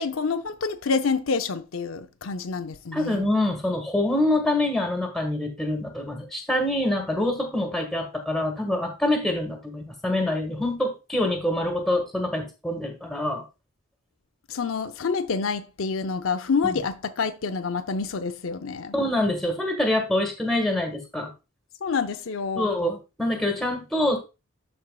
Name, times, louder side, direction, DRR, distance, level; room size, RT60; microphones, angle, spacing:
voice 1, 0.0-3.2 14.5-18.9 21.8-22.7, left 5 dB, 90° left, 0.6 m, -27 dB
voice 2, 2.9-13.4 16.6-16.8 18.9-21.3 22.5-24.2, left 1 dB, ahead, 1.6 m, -25 dB
12.5 x 4.5 x 2.3 m
head